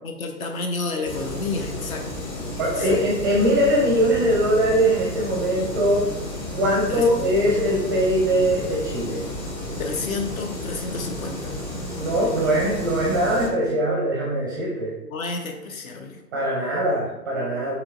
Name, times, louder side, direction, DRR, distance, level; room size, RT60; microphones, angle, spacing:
voice 1, 0.0-3.0 6.9-7.3 9.8-11.5 15.1-16.2, left 3 dB, 60° left, 4 dB, 0.8 m, -31 dB
sound 1, 1.0-13.5, left 1 dB, 25° left, 0.8 m, -32 dB
voice 2, 2.6-6.0 6.5-9.2 12.0-14.9 16.3-17.7, right 1 dB, 15° right, -4 dB, 0.5 m, -21 dB
5.8 x 3.0 x 2.4 m, 0.93 s
figure-of-eight pair, 120°, 49 cm